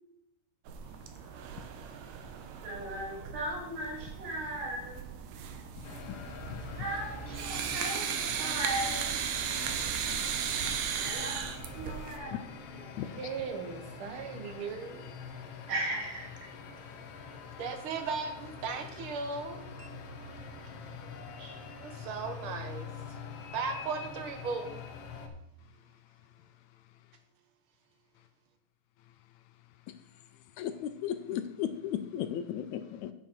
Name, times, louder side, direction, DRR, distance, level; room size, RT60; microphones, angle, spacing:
sound 1, 0.7-12.2, right 7 dB, 90° right, 2.5 m, -36 dB
voice 1, 2.6-5.0 6.7-9.1 10.8-11.3 11.7-12.4 12.7-13.0 15.7-16.3 21.0-21.6, right 1 dB, 55° right, -5 dB, 4.2 m, -37 dB
sound 2, 5.8-25.3, left 5 dB, 65° left, 1.7 m, -45 dB
voice 2, 13.0-15.0 17.6-19.9 21.8-22.9 23.5-24.8, right 5 dB, 70° right, 6 dB, 1.2 m, -37 dB
voice 3, 30.6-33.1, left 10 dB, 80° left, 10 dB, 1.7 m, -35 dB
9.9 x 7.6 x 4.4 m, 0.84 s
omnidirectional pair, 3.7 m